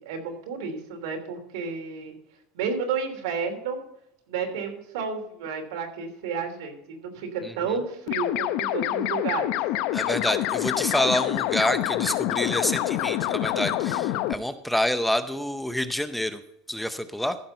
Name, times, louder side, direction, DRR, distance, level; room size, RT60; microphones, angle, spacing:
voice 1, 0.0-2.1 2.5-3.8 4.3-9.6, right 5 dB, 85° right, 3 dB, 3.0 m, -31 dB
sound 1, 8.1-14.3, left 14 dB, 60° left, 0.7 m, -26 dB
voice 2, 9.9-16.4 16.7-17.4, left 1 dB, 5° left, 10 dB, 0.6 m, -27 dB
14.5 x 6.0 x 5.4 m, 0.81 s
supercardioid pair, 150°, 2 cm